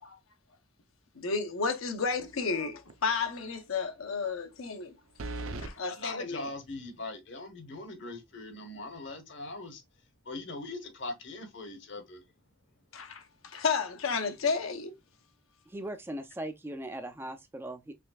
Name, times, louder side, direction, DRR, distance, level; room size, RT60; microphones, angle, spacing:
voice 1, 1.2-4.9 5.6-6.5 12.9-14.9, left 5 dB, 85° left, 0.8 m, -32 dB
sound 1, 2.1-2.5 2.9-3.0 5.2-5.7, right 2 dB, 85° right, 0.6 m, -38 dB
voice 2, 5.9-9.8 10.2-12.2, left 2 dB, 60° left, 1.0 m, -41 dB
voice 3, 15.7-17.9, right 1 dB, 10° right, 0.3 m, -39 dB
5.1 x 3.3 x 2.3 m
head